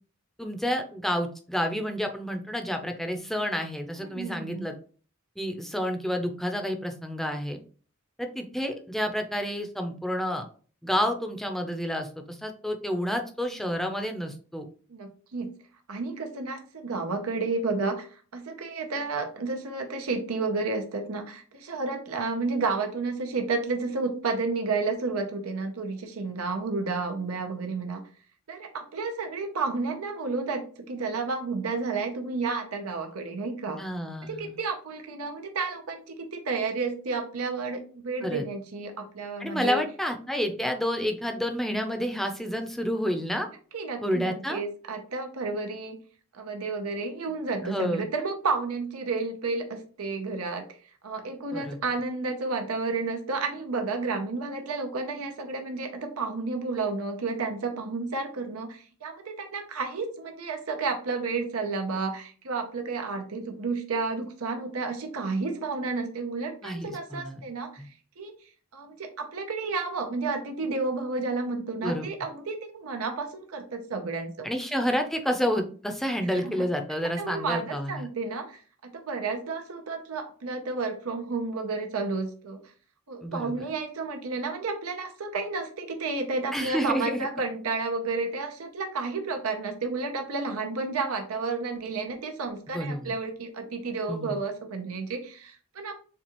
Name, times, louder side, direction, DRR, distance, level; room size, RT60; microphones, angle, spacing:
voice 1, 0.4-4.7 5.4-7.6 8.2-10.4 10.8-14.7 33.8-34.6 38.2-38.5 39.4-43.5 44.0-44.6 47.6-48.0 51.5-51.8 66.6-67.4 67.8-67.9 71.8-72.1 74.4-78.1 83.2-83.6 86.5-87.3 92.7-93.1 94.1-94.4, equal, ahead, 5 dB, 0.6 m, -29 dB
voice 2, 4.0-4.7 14.9-15.5 15.9-28.0 28.5-33.8 34.3-39.8 43.7-46.0 46.3-50.7 51.0-68.3 68.7-74.5 76.3-76.6 77.2-82.6 83.1-96.0, right 3 dB, 90° right, 4 dB, 0.7 m, -31 dB
7.1 x 2.4 x 3.0 m, 0.41 s
head